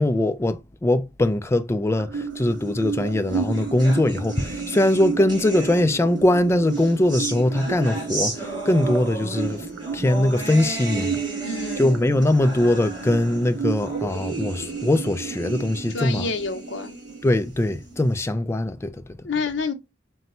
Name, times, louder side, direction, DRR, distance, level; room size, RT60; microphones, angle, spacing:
voice 1, 0.0-9.7 9.9-11.2 11.8-16.3 17.2-19.2, left 1 dB, 15° left, 0.3 m, -21 dB
sound 1, 2.0-18.0, right 5 dB, 80° right, 0.4 m, -33 dB
sound 2, 2.7-6.2 6.7-18.1, right 2 dB, 25° right, 1.6 m, -35 dB
voice 2, 11.4-11.9 15.9-16.9 19.2-19.7, left 4 dB, 70° left, 0.7 m, -28 dB
3.9 x 2.2 x 4.2 m
head